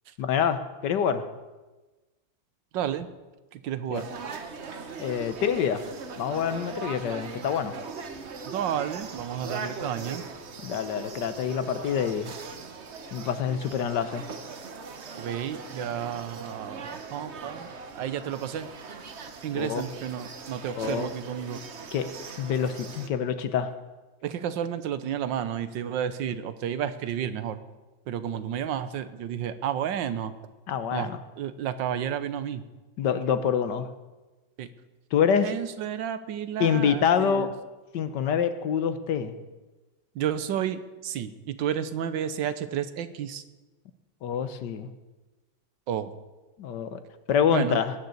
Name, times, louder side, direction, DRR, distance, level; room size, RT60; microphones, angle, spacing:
voice 1, 0.2-1.2 3.9-4.0 5.0-5.8 6.2-7.7 10.6-12.3 13.1-14.2 19.5-19.9 20.7-21.1 21.9-22.1 22.4-23.7 30.7-31.2 33.0-33.9 35.1-35.5 36.6-37.5 37.9-39.3 44.2-44.9 46.6-47.0 47.3-47.9, left 7 dB, 65° left, 11 dB, 1.4 m, -26 dB
voice 2, 2.7-3.1 3.5-4.1 8.5-10.2 15.1-18.7 19.4-21.6 24.2-27.6 28.1-30.3 30.9-32.6 34.6-34.7 35.4-37.5 40.1-43.4 45.9-46.1 47.5-47.8, right 9 dB, 75° right, 13 dB, 1.5 m, -31 dB
sound 1, 3.9-23.1, right 4 dB, 45° right, 1.1 m, -40 dB
19.0 x 6.6 x 8.1 m, 1.2 s
omnidirectional pair, 2.1 m